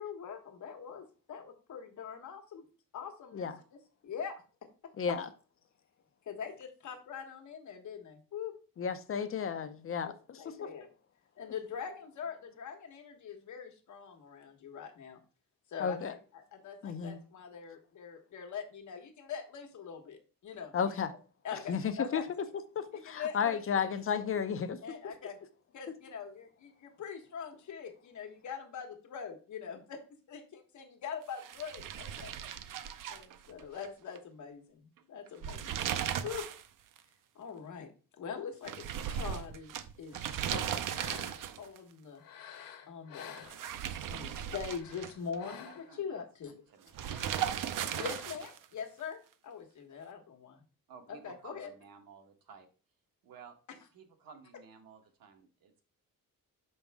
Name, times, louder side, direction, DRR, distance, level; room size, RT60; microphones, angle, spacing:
voice 1, 0.0-2.6 2.9-3.5 4.0-4.4 6.2-8.5 10.0-10.9 11.4-15.2 15.7-20.8 21.4-22.3 23.0-23.9 24.8-25.4 25.7-30.0 30.3-32.3 33.1-35.9 36.2-36.5 37.3-40.2 40.5-40.7 41.1-41.2 41.6-42.2 42.9-43.4 44.1-46.5 48.0-50.6 51.1-51.7, left 7 dB, 55° left, 1.4 m, -43 dB
voice 2, 5.0-5.3 8.8-10.6 15.8-16.2 16.8-17.2 20.7-21.1 21.7-22.2 22.7-24.8 25.0-25.1, left 7 dB, 40° left, 0.6 m, -33 dB
sound 1, 31.4-33.9 34.2-34.3 35.3-36.7 37.0-37.1 38.7-41.8 43.4-45.4 46.9-48.6, right 9 dB, 65° right, 0.6 m, -37 dB
sound 2, 40.1-41.6 42.2-44.0 44.6-46.1 46.9-48.5, left 8 dB, 90° left, 1.1 m, -51 dB
voice 3, 45.4-47.2 50.9-52.2 52.5-52.7 53.2-53.5 53.9-55.8, right 6 dB, 85° right, 1.3 m, -54 dB
6.1 x 5.3 x 3.4 m
wide cardioid pair, 175°, 34 cm